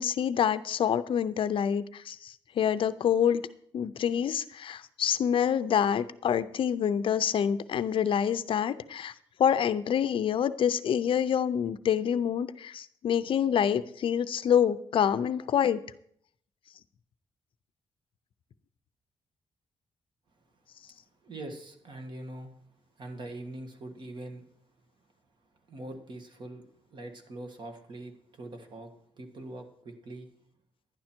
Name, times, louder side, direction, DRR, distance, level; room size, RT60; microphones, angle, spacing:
voice 1, 0.0-3.4 3.7-9.1 9.4-15.8, left 8 dB, 60° left, 14 dB, 0.5 m, -27 dB
voice 2, 21.2-22.5 23.0-24.4 25.7-26.6 26.9-30.3, right 2 dB, 50° right, 6 dB, 1.6 m, -43 dB
11.0 x 10.5 x 4.4 m, 0.66 s
wide cardioid pair, 150°, 10 cm